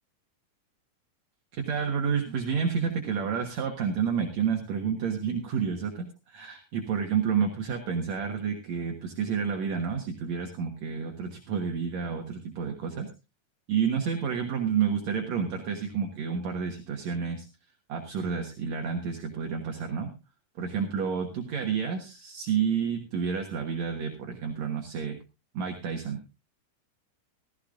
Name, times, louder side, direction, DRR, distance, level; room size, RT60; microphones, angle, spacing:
voice 1, 1.5-13.1 13.7-17.5 17.9-20.1 20.6-25.2 25.5-26.2, right 6 dB, 60° right, 3 dB, 2.5 m, -30 dB
15.5 x 15.5 x 2.5 m, 0.28 s
omnidirectional pair, 3.7 m